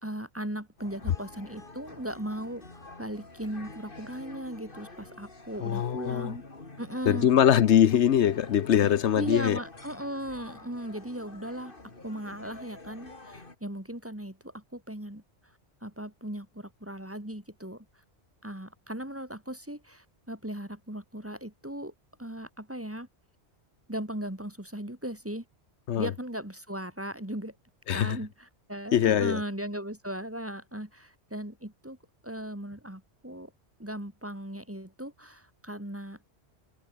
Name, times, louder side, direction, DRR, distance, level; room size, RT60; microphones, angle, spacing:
voice 1, 0.0-6.4 6.8-7.3 9.2-11.7 12.0-15.2 15.8-17.9 18.4-21.9 22.2-23.1 23.9-25.4 26.0-27.6 27.9-32.0 32.2-33.5 33.8-36.2, right 1 dB, 10° right, 2.3 m, -37 dB
sound 1, 0.8-13.5, left 2 dB, 50° left, 3.1 m, -48 dB
voice 2, 5.6-6.4 7.1-9.6 25.9-26.1 27.9-28.2 28.9-29.4, left 9 dB, 80° left, 1.1 m, -22 dB
omnidirectional pair, 1.1 m